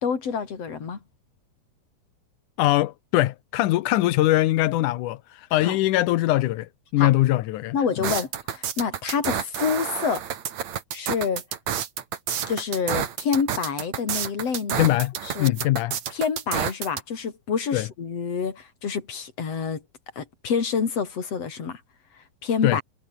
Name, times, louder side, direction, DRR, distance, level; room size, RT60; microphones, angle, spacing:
voice 1, 0.0-1.0 5.6-5.8 7.0-7.1 7.7-10.2 10.9-11.4 12.5-15.0 15.2-15.5 16.1-19.8 20.2-21.8 22.4-22.8, left 6 dB, 40° left, 4.1 m, -27 dB
voice 2, 2.6-7.8 14.8-15.1 15.4-16.0 17.7-17.9 22.6-22.8, left 16 dB, 75° left, 1.9 m, -22 dB
sound 1, 8.0-17.0, right 9 dB, 50° right, 2.9 m, -29 dB
omnidirectional pair, 4.5 m